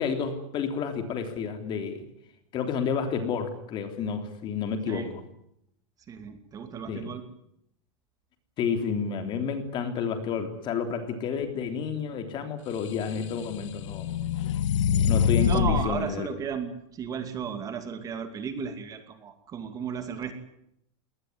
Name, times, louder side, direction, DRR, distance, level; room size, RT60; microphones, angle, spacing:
voice 1, 0.0-2.0 2.5-5.1 6.9-7.1 8.6-14.3 15.1-16.3, left 6 dB, 30° left, 7 dB, 3.4 m, -30 dB
voice 2, 6.1-7.2 15.5-20.3, right 7 dB, 20° right, 8 dB, 2.6 m, -34 dB
sound 1, 12.9-15.9, left 8 dB, 75° left, 1.7 m, -25 dB
21.5 x 19.0 x 9.5 m, 0.75 s
supercardioid pair, 155°, 16 cm